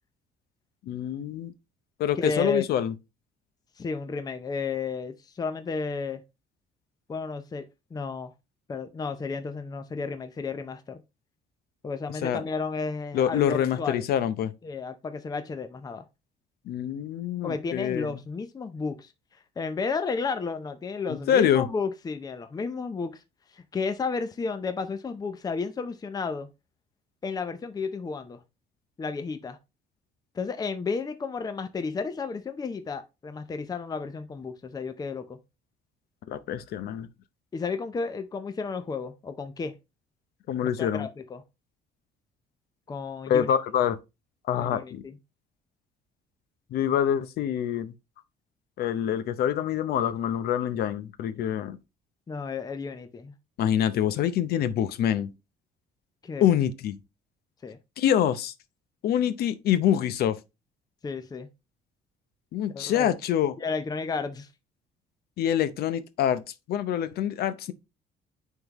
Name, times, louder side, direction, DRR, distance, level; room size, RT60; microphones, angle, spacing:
voice 1, 0.9-1.5 2.0-2.9 12.2-12.4 13.1-14.5 16.7-18.2 21.1-21.7 36.3-37.1 40.5-41.1 43.3-44.0 44.5-45.0 46.7-47.9 48.8-51.8 53.6-55.3 56.4-57.0 58.0-58.5 59.0-60.4 62.5-63.5 65.4-66.4 66.7-67.7, left 10 dB, 70° left, 0.7 m, -25 dB
voice 2, 2.2-2.7 3.8-6.2 7.1-7.7 7.9-8.3 8.7-11.0 11.8-14.0 14.6-16.1 17.4-19.1 19.6-23.2 23.5-26.5 27.2-28.4 29.0-29.6 30.3-35.4 37.5-39.7 40.8-41.4 42.9-43.5 44.6-45.1 52.3-53.3 56.2-56.4 57.6-57.8 61.0-61.5 62.7-63.2 63.6-64.5, left 4 dB, 20° left, 0.6 m, -32 dB
9.2 x 3.7 x 3.0 m
cardioid pair, 110°, 17 cm